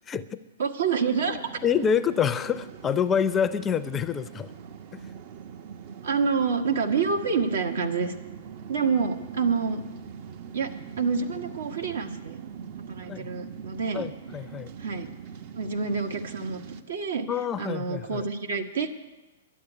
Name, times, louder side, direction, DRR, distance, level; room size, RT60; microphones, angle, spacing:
voice 1, 0.1-0.4 1.6-4.5 4.9-5.0 13.1-13.3 13.9-14.7 17.3-18.3, left 7 dB, 20° left, 12 dB, 0.5 m, -27 dB
voice 2, 0.6-1.4 6.0-8.1 8.7-9.8 10.5-10.7 11.0-12.4 12.9-14.1 14.8-15.1 15.5-17.3 17.6-18.9, right 5 dB, 75° right, 5 dB, 1.5 m, -27 dB
sound 1, 1.2-16.8, right 7 dB, 50° right, 0.9 m, -42 dB
12.0 x 8.3 x 9.9 m, 1.1 s
hypercardioid pair, 125°, 0 cm